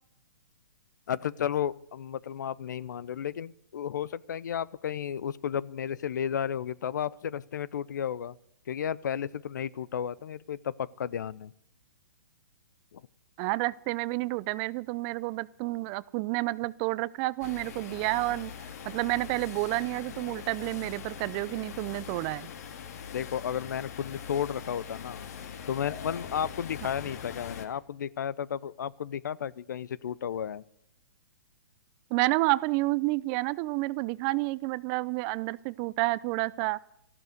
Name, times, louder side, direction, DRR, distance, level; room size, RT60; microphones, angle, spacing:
voice 1, 1.1-8.3 8.7-11.5 12.9-13.0 23.1-25.3 25.7-30.6, left 9 dB, 70° left, 22 dB, 0.7 m, -33 dB
voice 2, 13.4-18.5 18.8-22.5 32.1-36.8, right 21 dB, 30° right, 20 dB, 0.5 m, -30 dB
sound 1, 17.4-27.7, left 7 dB, 55° left, 2.1 m, -42 dB
14.0 x 12.0 x 7.9 m, 0.74 s
hypercardioid pair, 140°, 10 cm